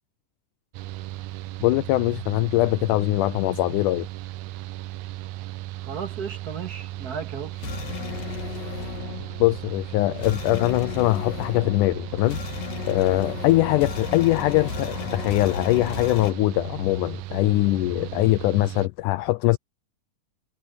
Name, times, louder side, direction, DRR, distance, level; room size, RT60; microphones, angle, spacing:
Mechanical fan, 0.7-18.9, right 16 dB, 90° right, 1.7 m, -36 dB
voice 1, 1.6-4.1 9.4-12.4 12.9-19.6, left 19 dB, 85° left, 1.8 m, -22 dB
voice 2, 5.8-7.6 13.1-13.4, right 6 dB, 35° right, 1.8 m, -35 dB
sound 1, 7.0-16.3, left 6 dB, 65° left, 4.2 m, -35 dB
omnidirectional pair, 4.1 m